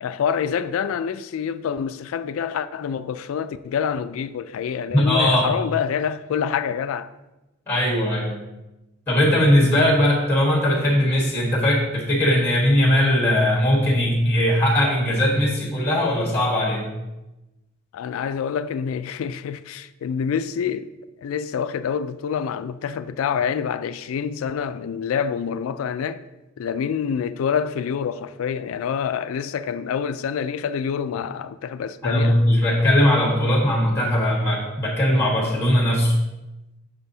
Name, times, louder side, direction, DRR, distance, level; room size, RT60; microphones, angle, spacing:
voice 1, 0.0-7.1 17.9-20.9 21.2-26.2 26.6-32.4, left 7 dB, 85° left, 0.3 m, -27 dB
voice 2, 4.9-5.5 7.7-8.4 9.1-16.9 32.0-36.1, left 1 dB, 10° left, 1.3 m, -19 dB
6.3 x 5.9 x 2.7 m
head